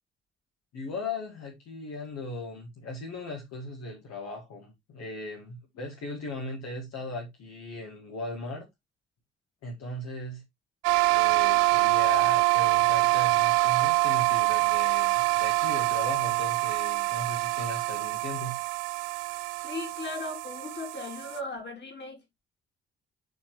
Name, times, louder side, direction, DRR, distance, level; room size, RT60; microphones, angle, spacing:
voice 1, 0.7-8.7 9.6-10.4 11.1-18.6, left 2 dB, 55° left, 2.0 m, -38 dB
sound 1, 10.8-21.4, right 25 dB, 60° right, 0.4 m, -25 dB
voice 2, 19.6-22.2, left 2 dB, 35° left, 3.0 m, -37 dB
9.0 x 4.4 x 3.1 m
figure-of-eight pair, 45°, 30 cm